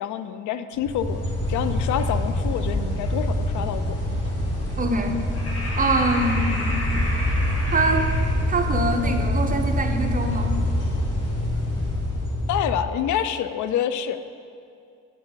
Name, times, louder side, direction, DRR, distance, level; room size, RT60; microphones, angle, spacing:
voice 1, 0.0-4.0 12.5-14.2, left 9 dB, 75° left, 11 dB, 0.4 m, -27 dB
sound 1, 0.8-12.7, left 1 dB, 55° left, 1.7 m, -26 dB
voice 2, 4.8-5.2 5.8-6.9 7.7-8.1 8.5-10.5, right 2 dB, 30° right, 4 dB, 0.7 m, -24 dB
sound 2, 6.8-12.8, equal, ahead, 1.4 m, -29 dB
8.5 x 4.5 x 5.2 m, 2.4 s
cardioid pair, 90°, 30 cm